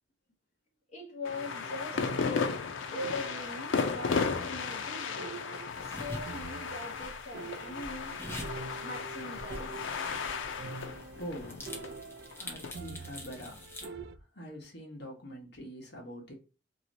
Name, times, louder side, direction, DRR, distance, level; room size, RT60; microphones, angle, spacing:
voice 1, 0.9-2.6 2.9-5.4 5.8-8.2 8.8-9.7, left 2 dB, 35° left, 1.0 m, -42 dB
sound 1, 1.2-12.7, left 5 dB, 90° left, 0.5 m, -35 dB
sound 2, 1.2-14.2, right 4 dB, 55° right, 0.3 m, -46 dB
sound 3, 5.7-13.9, left 1 dB, 15° left, 0.8 m, -46 dB
voice 2, 11.1-11.6 12.4-16.3, equal, 60° left, 1.2 m, -44 dB
3.0 x 3.0 x 2.6 m
head